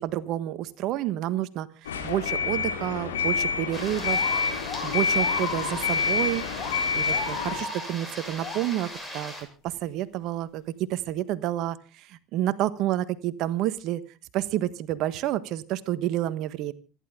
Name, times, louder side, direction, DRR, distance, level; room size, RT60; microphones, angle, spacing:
voice 1, 0.0-4.3 4.8-6.4 6.9-9.3 9.6-14.0 14.3-16.7, right 13 dB, 60° right, 15 dB, 1.3 m, -29 dB
sound 1, 1.8-7.6, left 5 dB, 85° left, 3.9 m, -27 dB
sound 2, 3.7-6.2 6.5-8.7, left 5 dB, 50° left, 7.6 m, -36 dB
sound 3, 3.7-9.4, equal, 10° left, 7.0 m, -39 dB
27.0 x 11.5 x 3.7 m, 0.33 s
hypercardioid pair, 70°, 0 cm